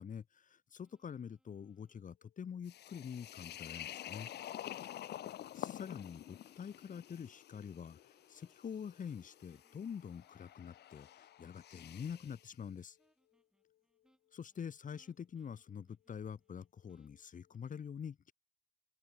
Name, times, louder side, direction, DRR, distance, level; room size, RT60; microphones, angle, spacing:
voice 1, 0.0-4.3 5.5-8.0 8.3-13.0 14.3-18.3, left 7 dB, 40° left, 0.9 m, -46 dB
sound 1, 0.8-2.0 3.1-11.3 12.0-12.6 13.0-17.6, equal, 5° right, 5.4 m, -77 dB
sound 2, 1.6-17.6, left 14 dB, 85° left, 3.8 m, -79 dB
sound 3, 2.7-12.5, left 12 dB, 55° left, 0.5 m, -49 dB
open air
cardioid pair, 90°, 20 cm